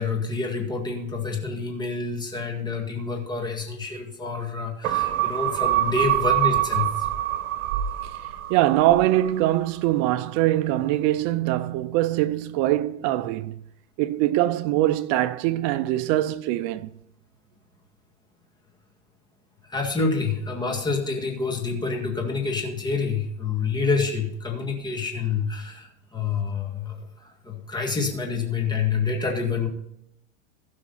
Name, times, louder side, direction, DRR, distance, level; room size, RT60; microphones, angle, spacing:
voice 1, 0.0-7.1 19.7-29.7, left 4 dB, 10° left, 1.9 m, -27 dB
sound 1, 4.8-9.5 9.9-10.0, right 13 dB, 65° right, 1.5 m, -25 dB
voice 2, 8.5-13.6 14.0-16.9, right 15 dB, 45° right, 0.5 m, -23 dB
16.0 x 6.0 x 4.1 m
supercardioid pair, 135°, 38 cm